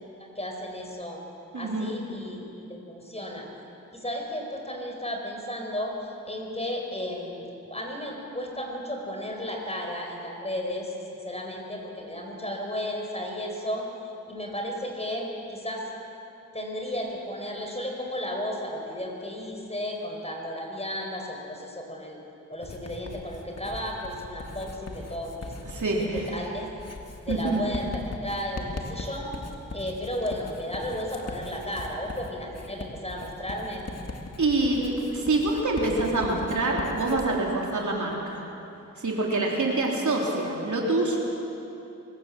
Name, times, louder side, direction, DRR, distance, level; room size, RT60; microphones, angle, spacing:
voice 1, 0.3-1.2 1.5-3.5 3.9-13.9 14.3-15.8 16.5-22.2 22.5-25.5 26.1-26.7 27.2-27.9 28.2-29.3 29.7-33.9, equal, 20° left, 1 dB, 4.9 m, -34 dB
voice 2, 1.5-1.9 25.7-26.2 27.3-27.6 34.4-38.4 39.0-41.2, right 2 dB, 65° right, -2 dB, 3.8 m, -26 dB
Writing, 22.6-37.3, left 2 dB, 50° left, 2.3 m, -40 dB
24.5 x 15.0 x 7.5 m, 2.9 s
cardioid pair, 55°, 32 cm